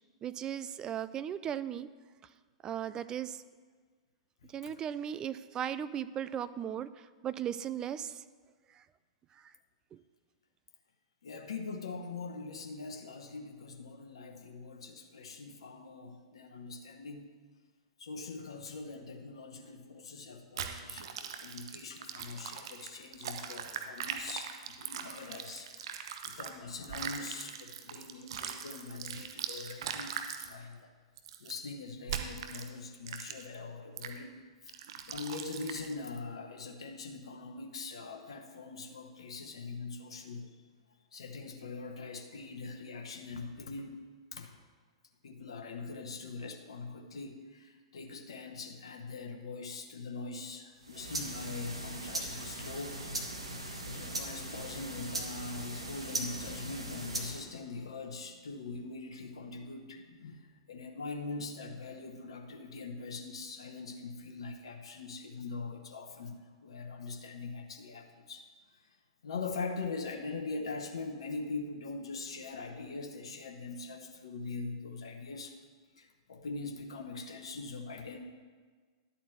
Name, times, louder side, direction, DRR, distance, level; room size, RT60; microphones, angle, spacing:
voice 1, 0.2-1.9 2.6-3.4 4.5-6.9 7.2-8.2, right 9 dB, 25° right, 14 dB, 0.4 m, -36 dB
voice 2, 4.4-4.7 11.2-17.3 18.0-30.9 31.4-34.4 34.6-34.8 35.1-40.6 41.1-44.0 44.3-44.5 45.2-53.0 53.8-68.5 69.2-75.5 76.0-78.2, left 3 dB, 65° left, 4 dB, 1.0 m, -42 dB
sound 1, 20.6-26.5 26.8-30.5 31.2-31.5 32.1-32.7 33.1-33.6 34.0-34.2 34.7-35.9, right 8 dB, 60° right, 0.9 m, -41 dB
sound 2, 50.8-57.5, right 1 dB, 80° right, 1.3 m, -39 dB
11.5 x 4.2 x 7.7 m, 1.5 s
figure-of-eight pair, 100°, 3 cm